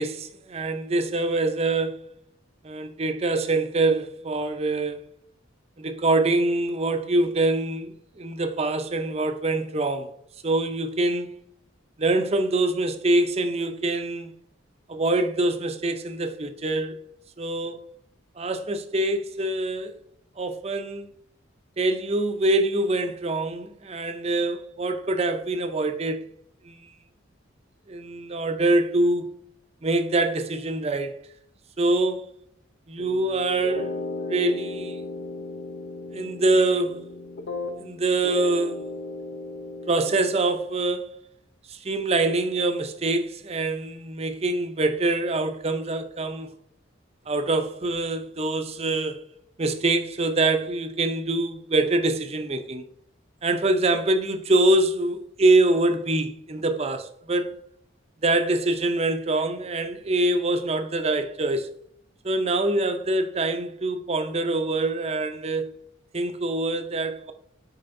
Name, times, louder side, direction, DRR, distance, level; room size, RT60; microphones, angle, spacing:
voice 1, 0.0-2.1 2.6-5.0 5.8-10.1 10.4-11.3 12.0-14.3 14.9-17.1 17.4-17.9 18.4-20.0 20.4-21.1 21.8-26.2 26.6-26.9 27.9-29.3 29.8-31.1 31.8-32.3 32.9-33.9 34.3-35.0 36.1-37.0 37.8-38.8 39.9-41.1 41.7-46.5 47.3-49.2 49.6-52.8 53.4-57.5 58.2-61.7 62.2-65.7 66.1-67.3, right 2 dB, 30° right, 0.6 m, -24 dB
sound 1, 33.0-37.9 38.2-40.4, left 2 dB, 60° left, 0.6 m, -35 dB
7.6 x 4.9 x 2.6 m
head